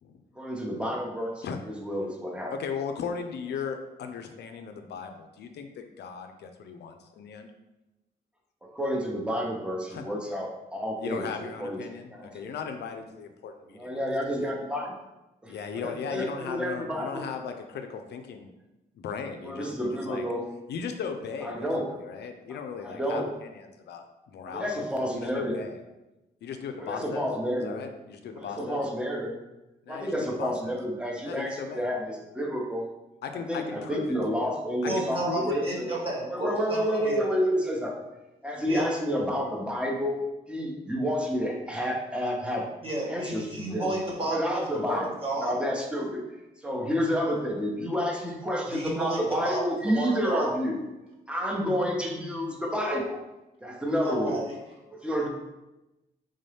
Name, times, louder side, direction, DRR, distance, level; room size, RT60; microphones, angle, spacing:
voice 1, 0.4-2.5 8.6-11.3 11.6-11.8 12.1-12.5 13.7-14.9 15.4-17.2 19.4-20.4 21.4-22.0 22.8-23.3 24.5-25.6 26.8-27.8 28.3-29.4 29.9-32.9 33.3-36.0 36.3-37.9 38.4-42.7 43.0-43.9 44.3-45.1 45.4-46.2 46.6-50.8 51.3-53.2 53.6-54.4 54.9-55.3, equal, 5° right, 0 dB, 0.8 m, -30 dB
voice 2, 2.5-7.5 9.9-10.0 11.0-13.9 14.3-14.5 15.5-18.5 19.0-20.3 20.7-25.8 26.4-27.3 27.6-28.8 29.8-30.8 31.2-31.8 33.2-34.0 34.3-34.5 34.8-35.8, left 6 dB, 75° left, 6 dB, 0.4 m, -37 dB
voice 3, 34.8-37.2 38.7-38.8 42.8-45.5 48.7-50.5 54.0-54.5, right 1 dB, 30° right, -4 dB, 1.4 m, -32 dB
3.7 x 2.6 x 3.3 m, 0.99 s
cardioid pair, 65°, 18 cm